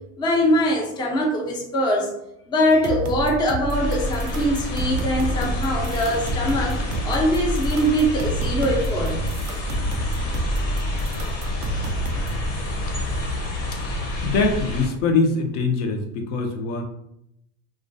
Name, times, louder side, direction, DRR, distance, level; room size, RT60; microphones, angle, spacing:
voice 1, 0.2-2.1 2.5-6.8 7.0-9.3, equal, 10° left, 0 dB, 0.3 m, -22 dB
sound 1, 2.7-12.5, right 3 dB, 50° right, 0.5 m, -30 dB
sound 2, 3.7-14.9, left 2 dB, 40° left, 0.7 m, -28 dB
voice 2, 14.2-16.8, left 3 dB, 75° left, 2 dB, 0.6 m, -22 dB
2.3 x 2.2 x 2.5 m, 0.80 s
supercardioid pair, 105°, 38 cm